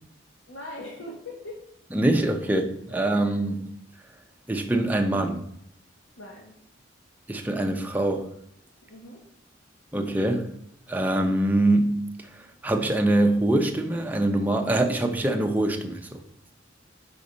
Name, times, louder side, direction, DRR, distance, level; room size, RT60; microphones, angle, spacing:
voice 1, 0.5-1.6 3.2-3.6 6.2-6.5 8.9-9.2, left 1 dB, 80° left, -3 dB, 1.1 m, -41 dB
voice 2, 1.9-3.7 4.5-5.4 7.3-8.3 9.9-10.5 10.9-16.2, right 1 dB, 10° right, 4 dB, 0.6 m, -24 dB
5.1 x 4.1 x 5.1 m, 0.74 s
head